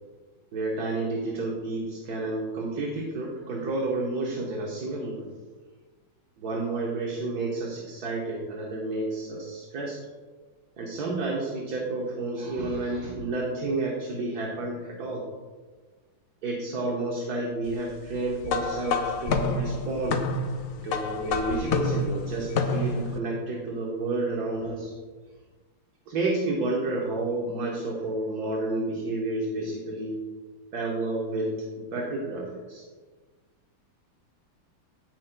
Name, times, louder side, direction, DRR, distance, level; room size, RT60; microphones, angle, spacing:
voice 1, 0.5-5.3 6.4-10.0 10.8-15.2 16.4-20.2 20.8-24.9 26.1-30.2 30.7-32.8, right 2 dB, 55° right, -2 dB, 1.5 m, -30 dB
sound 1, 18.4-23.2, left 3 dB, 80° left, 0.7 m, -28 dB
16.5 x 6.2 x 2.2 m, 1.4 s
omnidirectional pair, 2.2 m